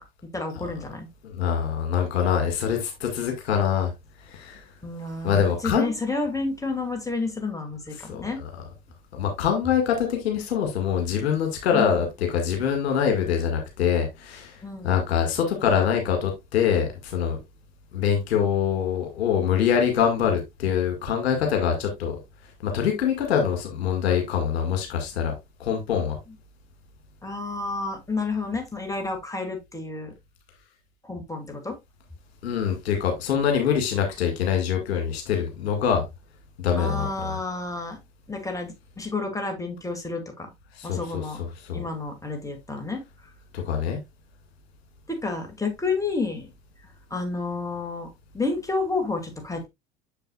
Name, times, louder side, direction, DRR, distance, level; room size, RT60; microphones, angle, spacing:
voice 1, 0.3-1.1 4.8-8.4 11.7-12.0 14.6-14.9 27.2-30.1 31.0-31.8 36.8-38.0 38.3-40.5 40.8-41.4 41.7-43.0 45.1-46.5 46.8-48.1 48.3-49.7, left 3 dB, 10° left, 2.4 m, -30 dB
voice 2, 1.2-3.9 4.3-4.6 5.2-5.9 8.1-8.5 9.1-17.4 17.9-22.2 22.6-25.3 25.6-26.2 32.4-36.1 36.6-37.3 40.8-41.2 41.6-41.8 43.5-44.0, left 8 dB, 70° left, 2.0 m, -24 dB
6.8 x 6.7 x 2.4 m
figure-of-eight pair, 60°, 33 cm